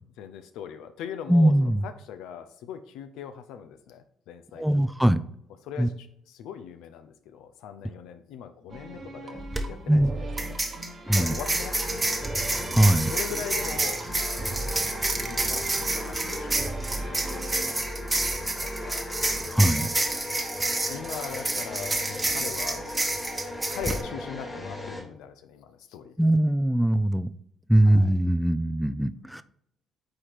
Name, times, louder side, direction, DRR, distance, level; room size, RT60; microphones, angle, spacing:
voice 1, 0.2-4.9 5.6-10.6 11.2-11.7 12.0-12.3 13.1-19.1 19.3-19.9 20.9-22.8 23.7-26.2 27.8-28.1, left 8 dB, 75° left, 9 dB, 0.5 m, -41 dB
voice 2, 1.3-1.8 4.6-5.2 5.8-5.9 9.9-10.1 11.1-11.4 12.7-13.1 19.5-19.9 26.2-27.3 27.7-29.4, right 1 dB, ahead, 13 dB, 0.4 m, -21 dB
sound 1, 8.7-17.7, right 2 dB, 45° right, 1.1 m, -38 dB
sound 2, 9.4-9.6 10.4-24.0, right 2 dB, 20° right, 1.0 m, -29 dB
sound 3, 11.1-25.0, left 1 dB, 40° left, 2.1 m, -37 dB
4.9 x 4.2 x 4.5 m, 0.72 s
supercardioid pair, 60°, 0 cm